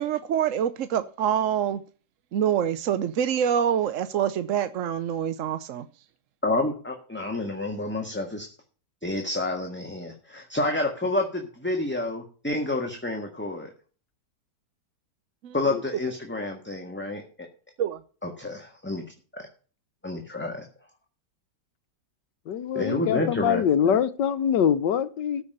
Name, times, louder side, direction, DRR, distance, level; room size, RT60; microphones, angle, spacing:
voice 1, 0.0-1.8 2.3-5.9 15.4-15.5 17.8-18.0, right 9 dB, 60° right, 0.9 m, -26 dB
voice 2, 6.4-8.5 9.0-13.7 15.5-17.5 18.2-19.0 19.3-19.4 20.0-20.6 22.7-24.0, left 2 dB, 5° left, 1.5 m, -29 dB
voice 3, 22.5-25.4, left 8 dB, 80° left, 1.6 m, -24 dB
14.0 x 5.9 x 6.7 m
omnidirectional pair, 1.9 m